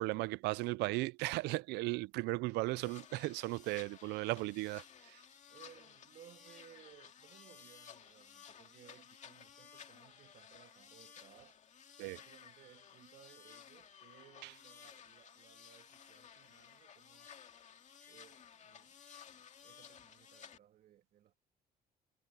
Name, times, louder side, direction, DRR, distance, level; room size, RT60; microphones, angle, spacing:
voice 1, 0.0-5.2 12.0-12.2 14.4-14.5, right 21 dB, 90° right, 0.5 m, -36 dB
sound 1, 2.8-20.6, left 8 dB, 45° left, 2.1 m, -57 dB
voice 2, 5.5-11.6 12.1-17.3 18.1-19.0 19.3-21.4, right 11 dB, 60° right, 1.6 m, -62 dB
cardioid pair, 110°, 17 cm